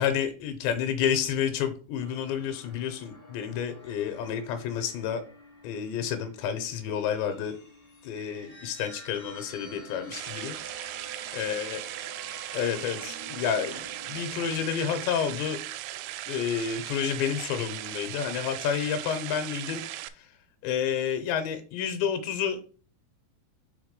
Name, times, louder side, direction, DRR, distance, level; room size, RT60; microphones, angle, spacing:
voice 1, 0.0-5.2 5.6-7.6 8.0-11.8 12.5-15.6 16.3-19.8 20.1-20.3 20.6-22.6, left 8 dB, 85° left, 7 dB, 2.7 m, -30 dB
sound 1, 2.0-14.8, right 1 dB, 45° left, 0.6 m, -49 dB
sound 2, 10.1-20.1, right 15 dB, 85° right, 2.9 m, -38 dB
6.4 x 3.4 x 5.1 m, 0.39 s
omnidirectional pair, 5.3 m